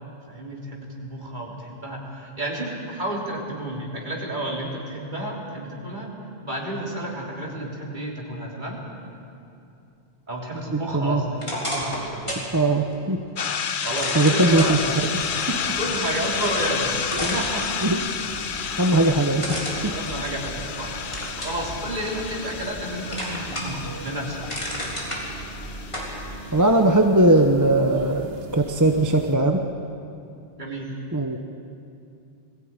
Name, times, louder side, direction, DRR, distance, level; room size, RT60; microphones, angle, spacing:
voice 1, 0.3-6.1 6.4-8.8 10.3-12.5 13.8-14.8 15.7-17.7 18.7-18.8 19.8-24.5 30.6-31.0, right 1 dB, 45° right, -3 dB, 3.6 m, -31 dB
voice 2, 10.7-11.2 12.5-13.2 14.1-14.8 15.5-15.6 17.2-17.4 17.8-18.0 18.8-19.9 26.5-28.3 28.5-29.6 31.1-31.4, right 2 dB, 20° right, 4 dB, 0.9 m, -20 dB
sound 1, 11.4-12.5 12.9-13.0 13.9-14.7 16.5-16.6 17.1-18.1 19.4-20.7 21.1-21.6 22.1-22.8 23.1-23.8 24.2-25.2 25.9-26.1, equal, 25° left, 3.8 m, -31 dB
sound 2, 13.4-26.7, left 7 dB, 55° left, 0.8 m, -31 dB
sound 3, 14.5-29.3, right 2 dB, 65° right, 1.9 m, -40 dB
21.5 x 15.5 x 8.9 m, 2.5 s
omnidirectional pair, 1.1 m